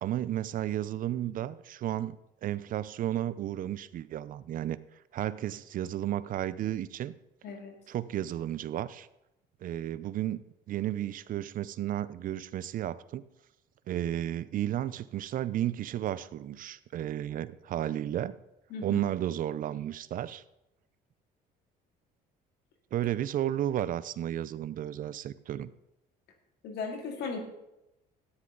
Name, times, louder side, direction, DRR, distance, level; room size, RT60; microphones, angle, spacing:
voice 1, 0.0-2.2 2.4-4.8 5.1-7.1 7.9-9.1 9.6-10.4 10.7-13.2 13.9-18.4 18.8-20.4 22.9-25.7, right 12 dB, 55° right, 17 dB, 0.5 m, -33 dB
voice 2, 7.4-7.7 18.7-19.0 26.6-27.4, left 4 dB, 80° left, 3 dB, 2.2 m, -37 dB
13.0 x 9.7 x 3.9 m, 0.88 s
cardioid pair, 110°, 17 cm